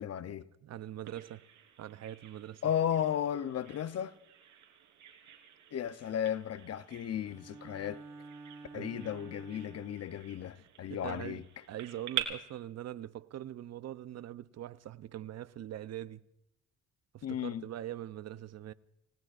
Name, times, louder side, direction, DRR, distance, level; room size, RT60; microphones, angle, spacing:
voice 1, 0.0-0.5 2.6-4.2 5.7-8.0 8.7-11.4 17.2-17.6, left 9 dB, 55° left, 0.7 m, -34 dB
voice 2, 0.6-1.5 1.8-2.6 8.7-9.1 10.6-10.7 10.9-16.2 17.1-18.7, right 12 dB, 60° right, 0.7 m, -43 dB
Bird vocalization bird call bird song, 1.1-12.2, right 11 dB, 80° right, 3.2 m, -46 dB
Bowed string instrument, 7.2-10.3, right 3 dB, 10° right, 6.5 m, -50 dB
29.0 x 18.5 x 2.5 m
cardioid pair, 90°, 30 cm